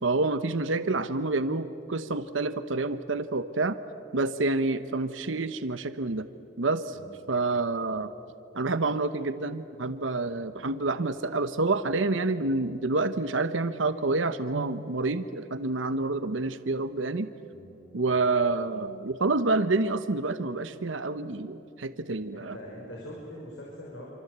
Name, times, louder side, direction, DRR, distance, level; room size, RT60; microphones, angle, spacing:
voice 1, 0.0-3.8 4.1-6.3 6.6-7.0 7.3-8.1 8.5-17.3 17.9-22.6, right 3 dB, 85° right, 11 dB, 1.0 m, -28 dB
voice 2, 17.5-17.9 22.3-24.1, equal, 80° left, -3 dB, 5.8 m, -43 dB
27.0 x 26.5 x 8.2 m, 2.9 s
head